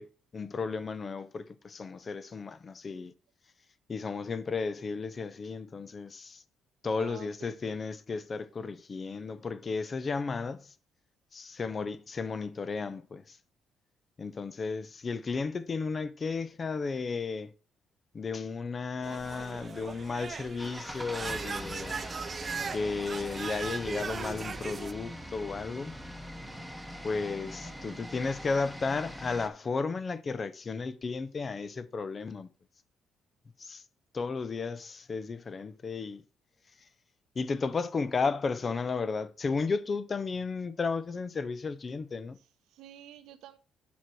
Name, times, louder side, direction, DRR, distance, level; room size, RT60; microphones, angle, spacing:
voice 1, 0.0-3.1 3.9-6.4 6.8-10.7 11.3-13.4 14.2-17.5 18.1-22.0 22.7-26.0 27.0-32.5 33.6-33.8 34.1-36.2 37.4-42.4, left 4 dB, 35° left, 0.6 m, -34 dB
voice 2, 6.9-7.5 27.6-28.0 42.7-43.6, right 12 dB, 85° right, 0.9 m, -49 dB
sound 1, 19.0-24.9, right 5 dB, 35° right, 0.5 m, -39 dB
sound 2, 20.6-29.5, equal, ahead, 1.1 m, -42 dB
7.2 x 6.1 x 4.6 m
cardioid pair, 110°, 0 cm